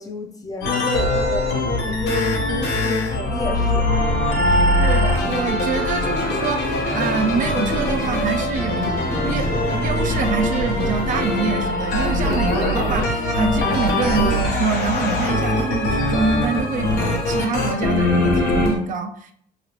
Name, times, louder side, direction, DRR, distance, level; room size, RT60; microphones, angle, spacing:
voice 1, 0.0-4.0 4.3-4.5, left 3 dB, 20° left, 4 dB, 0.5 m, -31 dB
sound 1, 0.6-18.7, left 1 dB, 80° left, 0.9 m, -22 dB
sound 2, 3.6-11.2, right 3 dB, 75° right, 1.0 m, -38 dB
voice 2, 4.5-9.0 9.2-19.3, right 5 dB, 50° right, 6 dB, 0.4 m, -26 dB
sound 3, 5.0-18.8, left 2 dB, 55° left, 1.0 m, -31 dB
2.9 x 2.8 x 2.9 m, 0.62 s
cardioid pair, 110°, 17 cm